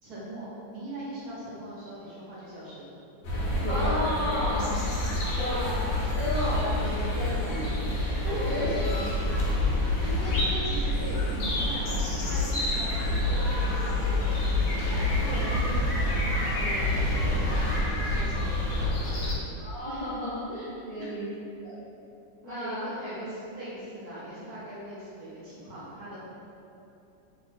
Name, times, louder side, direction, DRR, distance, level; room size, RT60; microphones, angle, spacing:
voice 1, 0.0-2.9 5.5-5.7 7.4-7.9 8.4-9.3 10.0-19.3 21.0-21.1 22.4-26.2, right 1 dB, 60° right, -8 dB, 1.3 m, -40 dB
sound 1, 3.2-19.3, left 1 dB, 75° left, 1.4 m, -27 dB
voice 2, 3.7-4.8 5.4-5.8 6.1-7.5 8.2-8.7 19.6-21.3 21.6-21.7 22.4-22.8, left 1 dB, 30° left, -16 dB, 0.6 m, -32 dB
3.3 x 2.8 x 4.1 m, 2.7 s
omnidirectional pair, 2.1 m